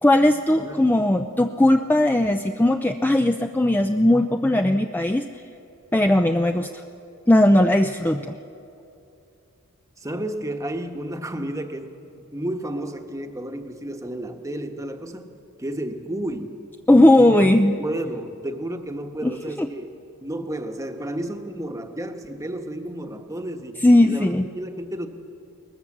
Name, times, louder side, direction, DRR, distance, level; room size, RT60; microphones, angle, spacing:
voice 1, 0.0-5.3 5.9-6.8 7.3-8.4 16.9-17.8 19.2-19.3 19.6-19.7 23.8-24.5, left 1 dB, 10° left, 6 dB, 0.4 m, -18 dB
voice 2, 0.6-0.9 10.0-15.3 15.6-16.6 17.1-17.3 17.8-19.9 20.2-25.1, right 1 dB, 15° right, 5 dB, 1.2 m, -32 dB
21.5 x 20.0 x 7.3 m, 2.7 s
head